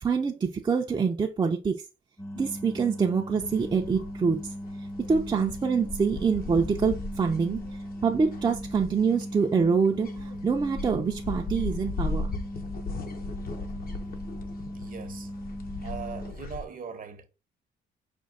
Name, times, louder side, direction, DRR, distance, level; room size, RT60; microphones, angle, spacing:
voice 1, 0.0-1.8 2.4-4.5 5.1-7.6 8.0-10.1 10.4-12.3, right 5 dB, 25° right, 0.5 m, -25 dB
sound 1, 2.2-16.3, equal, 15° left, 0.7 m, -38 dB
sound 2, 3.4-16.6, left 3 dB, 50° left, 0.8 m, -38 dB
voice 2, 14.7-15.3 15.8-17.3, right 6 dB, 45° right, 0.8 m, -40 dB
5.2 x 2.2 x 3.6 m
cardioid pair, 90°, 20 cm